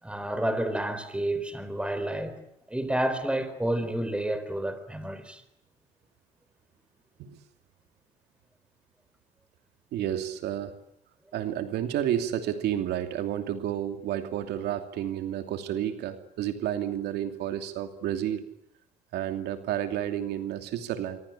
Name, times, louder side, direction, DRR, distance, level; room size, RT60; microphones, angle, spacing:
voice 1, 0.0-2.4 2.7-5.4, right 1 dB, 5° right, 4.4 m, -30 dB
voice 2, 9.9-10.8 11.3-18.5 19.1-21.2, right 11 dB, 75° right, 2.8 m, -31 dB
26.5 x 24.0 x 8.7 m
cardioid pair, 110°, 17 cm